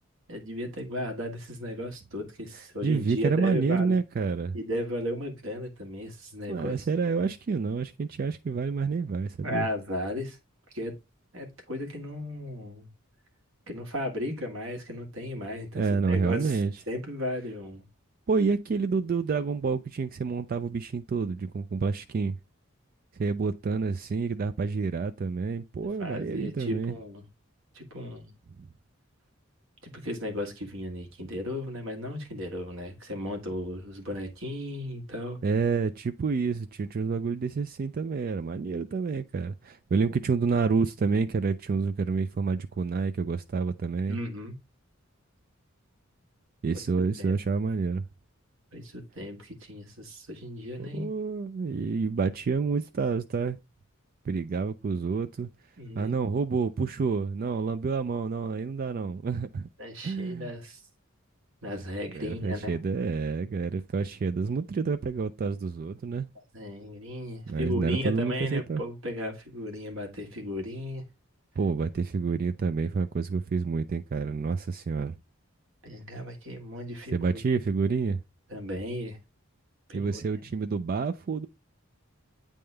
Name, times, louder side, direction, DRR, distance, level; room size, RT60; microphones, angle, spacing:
voice 1, 0.3-4.0 4.5-6.8 9.4-10.4 10.7-10.9 11.3-12.9 13.7-16.6 16.9-17.9 26.0-27.2 27.7-28.4 30.0-35.4 44.1-44.6 47.2-47.3 48.7-51.1 55.8-56.2 59.8-60.8 61.6-62.8 66.5-71.0 75.8-77.6 78.5-79.2 79.9-80.5, left 1 dB, 65° right, 1.6 m, -35 dB
voice 2, 2.8-4.6 6.5-9.7 15.7-16.7 18.3-22.4 23.2-26.9 35.4-44.2 46.6-48.0 50.8-53.6 54.3-55.5 56.0-59.7 60.0-60.5 62.1-66.3 67.5-68.8 71.6-75.1 77.1-78.2 79.9-81.5, right 4 dB, 45° right, 0.3 m, -28 dB
8.6 x 3.6 x 3.3 m
head